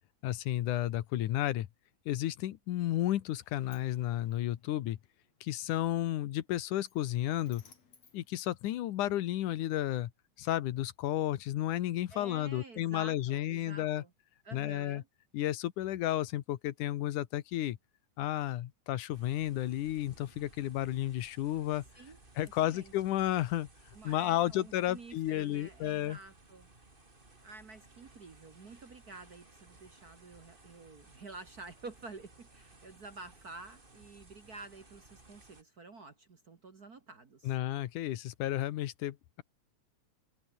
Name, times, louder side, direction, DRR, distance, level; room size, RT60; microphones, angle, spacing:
voice 1, 0.2-1.7 2.1-5.0 5.4-7.6 8.1-10.1 10.4-14.0 14.5-15.0 15.3-17.8 18.2-21.8 22.4-23.7 24.0-26.2 37.4-39.4, left 13 dB, 85° left, 2.6 m, -32 dB
Sliding door, 3.2-9.2, left 6 dB, 60° left, 4.8 m, -65 dB
voice 2, 12.1-14.1 14.4-15.1 21.9-22.2 22.4-22.9 23.9-26.7 27.4-37.5, right 3 dB, 40° right, 1.7 m, -50 dB
sound 1, 19.1-35.6, right 2 dB, 15° right, 2.9 m, -59 dB
omnidirectional pair, 3.5 m